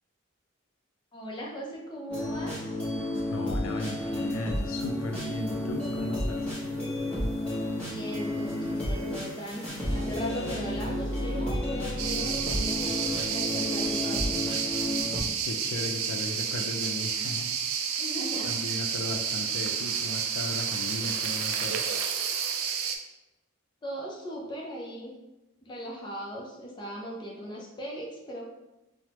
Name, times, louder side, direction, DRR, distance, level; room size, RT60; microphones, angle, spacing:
voice 1, 1.1-2.6 7.7-14.4 18.0-18.8 23.8-25.2 25.6-28.5, equal, 20° left, -3 dB, 0.5 m, -38 dB
sound 1, 2.1-15.2, left 1 dB, 5° left, 0.9 m, -31 dB
voice 2, 3.3-6.5 15.5-17.6 18.4-21.9, left 2 dB, 80° left, 5 dB, 0.4 m, -36 dB
sound 2, 12.0-23.0, right 7 dB, 90° right, 0.3 m, -30 dB
3.2 x 2.0 x 2.8 m, 0.98 s
head